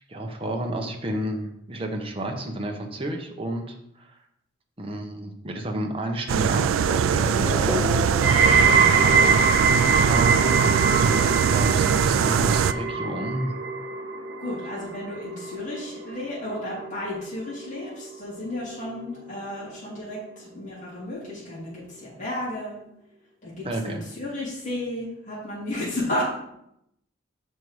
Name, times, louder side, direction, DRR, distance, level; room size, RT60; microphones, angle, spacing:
voice 1, 0.1-4.2 4.8-7.8 10.0-10.7 11.5-13.5 23.6-24.0, right 1 dB, 25° right, 2 dB, 0.9 m, -31 dB
sound 1, 6.3-12.7, right 7 dB, 85° right, 0.3 m, -22 dB
Race car auto racing / Accelerating revving vroom, 7.3-13.4, left 2 dB, 10° right, 1.1 m, -36 dB
sound 2, 8.2-19.3 19.6-20.2 20.9-21.0, right 5 dB, 70° right, 0.8 m, -24 dB
voice 2, 14.4-22.7 23.4-26.2, left 1 dB, 35° left, -8 dB, 3.1 m, -33 dB
6.4 x 5.4 x 4.7 m, 0.79 s
head